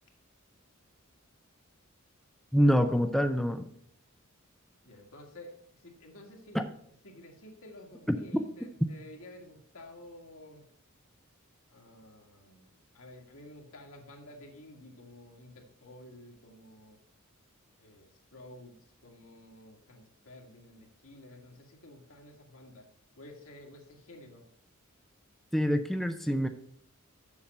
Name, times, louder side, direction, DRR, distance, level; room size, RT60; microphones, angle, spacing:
voice 1, 2.5-3.7 6.5-6.6 8.1-8.2 25.5-26.5, equal, ahead, 6 dB, 0.4 m, -26 dB
voice 2, 4.8-6.6 7.0-10.7 11.7-17.0 17.8-22.9 23.2-24.5, left 1 dB, 70° left, 1 dB, 1.8 m, -51 dB
7.1 x 6.5 x 5.3 m, 0.68 s
head